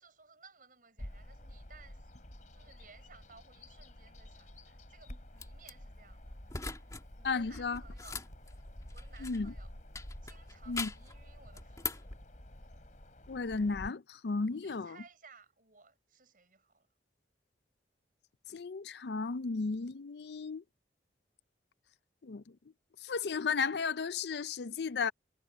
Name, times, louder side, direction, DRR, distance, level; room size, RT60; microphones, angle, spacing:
voice 1, 0.0-2.1 2.5-6.3 7.2-8.2 8.9-9.7 10.2-12.2 14.5-16.9, right 5 dB, 50° right, 6.6 m, -59 dB
Bird vocalization bird call bird song, 1.0-13.9, left 1 dB, 45° left, 3.2 m, -50 dB
sound 1, 5.4-5.7 6.5-7.0 7.3-9.5 9.9-11.1 11.5-12.1, left 4 dB, 20° left, 2.5 m, -41 dB
voice 2, 7.2-7.8 9.2-9.5 10.7-10.9 13.3-15.0 18.5-20.6 22.2-22.4 23.0-25.1, left 4 dB, 65° left, 0.5 m, -34 dB
head